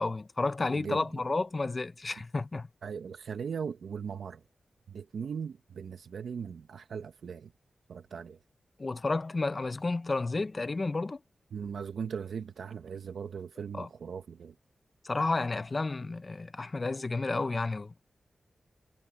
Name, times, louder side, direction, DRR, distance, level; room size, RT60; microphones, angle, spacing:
voice 1, 0.0-2.7 8.8-11.2 13.7-13.9 15.0-18.1, left 3 dB, 40° left, 0.6 m, -31 dB
voice 2, 2.8-4.4 4.9-7.5 7.9-8.4 11.5-14.5, right 6 dB, 85° right, 0.9 m, -39 dB
cardioid pair, 70°, 0 cm